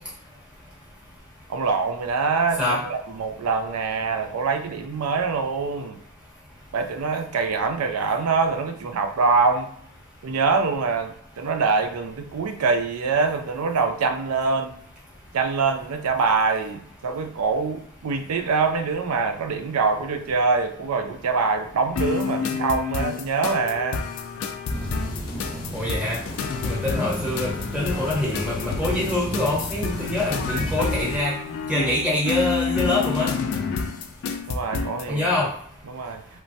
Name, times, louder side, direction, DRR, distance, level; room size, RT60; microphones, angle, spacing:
voice 1, 1.5-6.0 6.7-9.7 10.2-14.7 15.3-24.1 34.5-35.3 35.8-36.2, right 4 dB, 85° right, 7 dB, 0.4 m, -24 dB
sound 1, 22.0-35.1, left 5 dB, 70° left, 0.3 m, -29 dB
sound 2, 24.7-31.2, equal, 25° left, 0.7 m, -33 dB
voice 2, 25.7-26.2 26.6-31.3 31.7-33.3 35.1-35.5, left 1 dB, 5° right, -7 dB, 0.9 m, -25 dB
3.0 x 2.1 x 2.6 m, 0.63 s
head